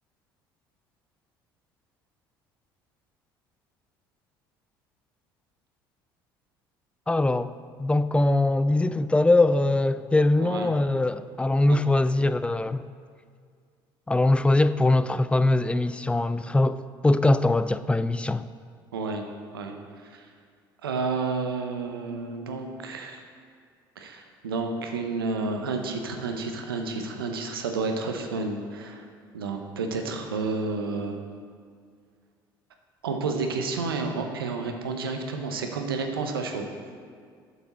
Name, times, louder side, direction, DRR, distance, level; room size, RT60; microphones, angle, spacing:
voice 1, 7.1-7.5 7.8-12.9 14.1-18.5, left 2 dB, 10° left, 14 dB, 0.3 m, -22 dB
voice 2, 10.4-10.8 11.7-11.8 18.9-19.2 19.5-20.3 20.8-23.2 24.0-29.1 29.3-31.2 33.0-36.7, right 4 dB, 90° right, 4 dB, 0.8 m, -31 dB
8.2 x 6.9 x 4.2 m, 2.1 s
hypercardioid pair, 65°, 12 cm